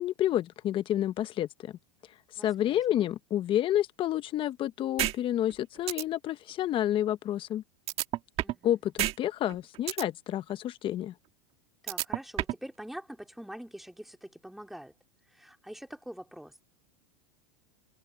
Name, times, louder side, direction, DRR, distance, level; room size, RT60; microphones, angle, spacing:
voice 1, 0.0-1.8 2.4-7.6 8.6-11.1, left 12 dB, 35° left, 1.1 m, -29 dB
voice 2, 2.4-3.1 8.4-8.7 11.8-14.9 15.3-16.6, equal, ahead, 3.4 m, -45 dB
sound 1, 5.0-5.1 5.5-5.6 5.9-6.0 7.9-8.6 9.0-9.1 9.5-10.0 11.9-12.6, right 15 dB, 45° right, 1.7 m, -29 dB
open air
supercardioid pair, 115°, 15 cm